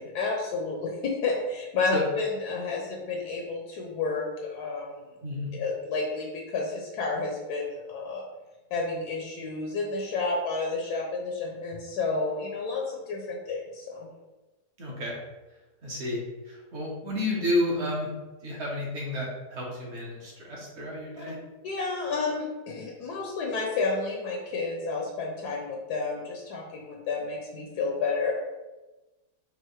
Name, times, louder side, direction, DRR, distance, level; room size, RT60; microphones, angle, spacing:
voice 1, 0.0-5.0 5.5-8.2 8.7-14.1 21.2-21.3 21.6-28.3, left 3 dB, 75° left, 0 dB, 1.2 m, -31 dB
voice 2, 14.8-15.2 15.8-18.1 18.4-21.4, left 1 dB, 45° right, -3 dB, 1.2 m, -31 dB
5.5 x 2.5 x 3.1 m, 1.1 s
omnidirectional pair, 1.8 m